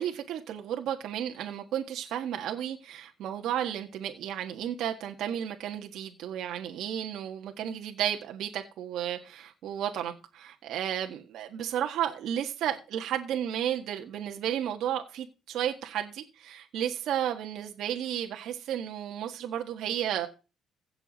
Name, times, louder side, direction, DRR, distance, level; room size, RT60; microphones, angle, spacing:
voice 1, 0.0-20.3, right 10 dB, 70° right, 1.6 m, -33 dB
16.5 x 7.0 x 4.1 m
cardioid pair, 140°, 0 cm